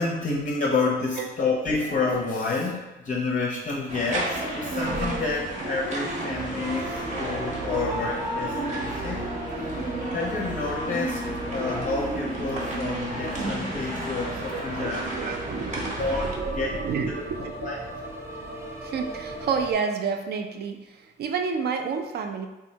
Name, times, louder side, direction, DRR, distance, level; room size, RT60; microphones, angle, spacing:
voice 1, 0.0-9.3 9.6-15.1 16.0-16.8 17.2-17.3 17.6-17.8, left 3 dB, 40° left, -3 dB, 0.5 m, -29 dB
sound 1, 3.9-16.3, right 1 dB, 40° right, 0.8 m, -32 dB
sound 2, 6.4-19.7, right 1 dB, 10° right, 0.6 m, -36 dB
voice 2, 14.5-17.7 18.8-22.5, right 5 dB, 55° right, 5 dB, 0.4 m, -30 dB
3.5 x 2.0 x 2.7 m, 1.1 s
cardioid pair, 90°, 20 cm